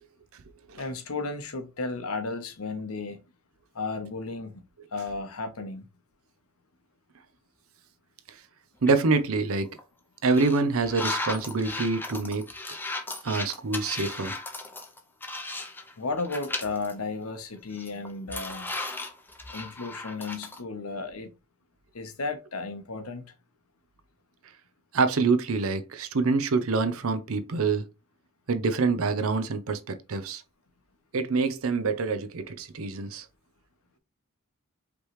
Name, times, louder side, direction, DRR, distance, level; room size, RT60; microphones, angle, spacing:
voice 1, 0.8-3.2 3.7-4.6 4.9-5.9 16.0-18.7 19.5-21.3 21.9-23.3, left 3 dB, 80° left, 0.9 m, -34 dB
voice 2, 8.8-9.7 10.2-12.5 13.2-14.4 24.9-27.9 28.5-30.4 31.1-33.3, right 4 dB, 75° right, 0.6 m, -26 dB
Counting Coins, 8.9-9.2 9.7-9.8 10.3-15.9 16.2-16.9 17.3-17.4 17.7-20.6, left 2 dB, 10° left, 0.5 m, -36 dB
5.1 x 3.1 x 3.1 m
head